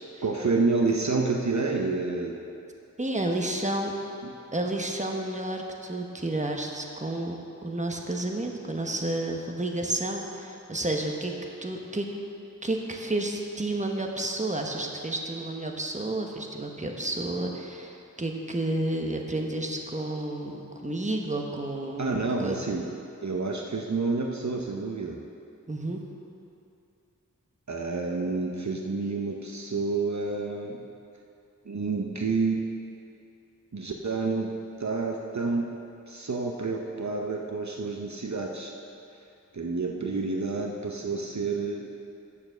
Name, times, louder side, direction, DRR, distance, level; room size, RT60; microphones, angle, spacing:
voice 1, 0.2-2.4 4.2-4.3 22.0-22.9 23.2-25.2 27.7-30.8 31.7-32.6 33.7-34.5 34.8-35.7 36.1-38.7 39.5-41.9, right 3 dB, 60° right, 1 dB, 0.7 m, -29 dB
voice 2, 3.0-3.9 4.5-11.4 11.6-12.1 12.6-22.6 25.7-26.0, right 2 dB, 20° right, 2 dB, 1.0 m, -31 dB
8.6 x 7.1 x 6.7 m, 2.7 s
wide cardioid pair, 45°, 32 cm